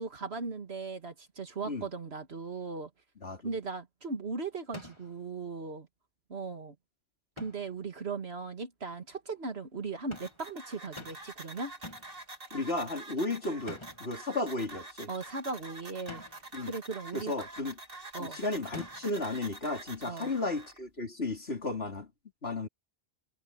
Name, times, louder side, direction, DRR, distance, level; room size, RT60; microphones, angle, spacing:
voice 1, 0.0-2.9 3.4-5.9 6.3-6.8 7.4-11.7 15.1-16.2 16.6-17.3 18.1-18.4 20.1-20.3, right 4 dB, 80° right, 2.4 m, -38 dB
sound 1, 4.7-5.2 7.4-7.8 10.1-10.5 11.0-11.4 11.8-12.2 13.7-14.2 16.1-16.5 18.7-19.2, left 2 dB, 25° left, 2.1 m, -47 dB
sound 2, 10.1-20.8, right 2 dB, 60° right, 3.5 m, -47 dB
voice 2, 12.5-15.1 16.5-16.7 17.1-17.7 18.2-22.1 22.4-22.7, left 2 dB, 75° left, 3.9 m, -34 dB
omnidirectional pair, 1.1 m